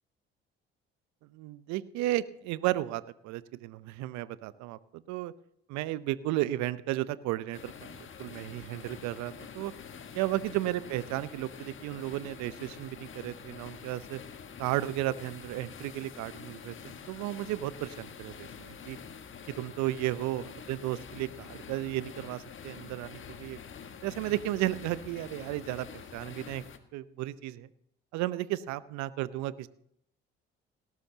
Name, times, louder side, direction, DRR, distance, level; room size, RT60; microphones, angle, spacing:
voice 1, 1.3-5.3 5.7-7.9 8.2-9.7 10.1-14.2 14.6-19.0 19.5-23.6 24.0-26.6 26.9-27.7 28.1-29.7, right 15 dB, 65° right, 17 dB, 0.7 m, -34 dB
sound 1, 7.5-26.8, left 6 dB, 40° left, 1.5 m, -47 dB
18.0 x 12.5 x 2.9 m, 0.72 s
hypercardioid pair, 55°, 30 cm